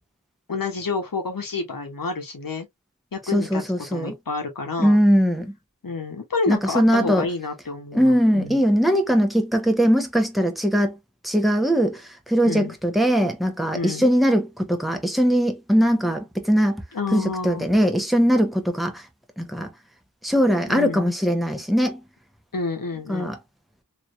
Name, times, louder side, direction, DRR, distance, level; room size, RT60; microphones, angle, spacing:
voice 1, 0.5-2.7 3.1-3.6 3.9-5.0 5.8-8.6 12.4-12.7 13.7-14.0 16.9-17.7 20.7-21.1 22.5-23.3, left 4 dB, 90° left, 1.2 m, -29 dB
voice 2, 3.3-4.1 4.8-5.5 6.5-7.3 7.9-11.0 11.2-16.8 17.1-19.1 19.4-19.7 20.2-22.0 23.1-23.4, equal, ahead, 1.0 m, -20 dB
3.3 x 3.0 x 2.5 m
wide cardioid pair, 50°, 33 cm